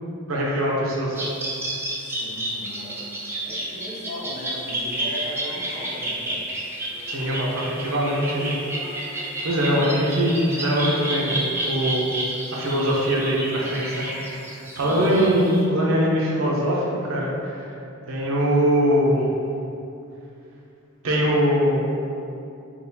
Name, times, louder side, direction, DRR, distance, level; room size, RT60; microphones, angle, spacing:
voice 1, 0.3-1.3 7.1-8.6 9.0-12.2 12.5-14.1 14.5-17.6 18.1-19.3 21.0-21.9, equal, 75° right, -4 dB, 0.6 m, -22 dB
sound 1, 1.1-15.6, right 1 dB, 10° right, 0.4 m, -30 dB
voice 2, 2.0-3.1 3.4-6.5 14.6-15.3, left 1 dB, 45° left, -9 dB, 1.0 m, -37 dB
3.8 x 2.3 x 2.7 m, 2.6 s
head